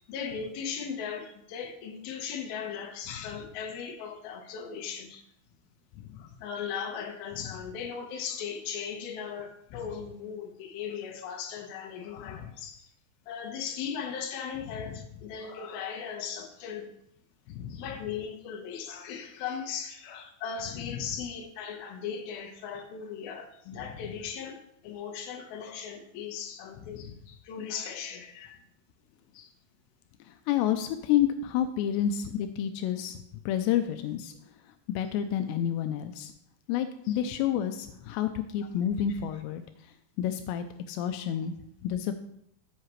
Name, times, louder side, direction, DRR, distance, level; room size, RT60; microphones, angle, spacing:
voice 1, 0.1-5.2 6.2-12.9 13.3-16.9 17.7-24.6 24.8-28.6 29.3-29.5 37.1-37.2 39.1-39.2, left 7 dB, 70° left, 3 dB, 2.5 m, -38 dB
voice 2, 30.3-34.3 34.9-36.3 36.7-39.6 40.2-41.5 41.8-42.2, left 10 dB, 90° left, 8 dB, 2.4 m, -29 dB
15.5 x 5.7 x 3.2 m, 0.73 s
omnidirectional pair, 5.6 m